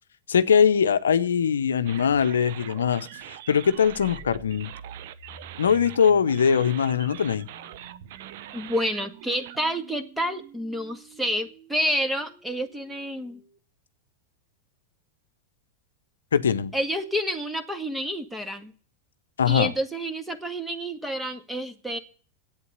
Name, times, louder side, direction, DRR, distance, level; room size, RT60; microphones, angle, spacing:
voice 1, 0.3-4.7 5.6-7.5 16.3-16.7 19.4-19.7, left 7 dB, 80° left, 0.7 m, -22 dB
sound 1, 1.8-9.6, right 12 dB, 65° right, 0.8 m, -43 dB
sound 2, 3.7-13.6, right 5 dB, 35° right, 2.7 m, -49 dB
voice 2, 8.5-13.4 16.7-18.7 19.5-22.0, equal, 5° right, 1.8 m, -29 dB
11.0 x 8.8 x 8.1 m
hypercardioid pair, 90°, 0 cm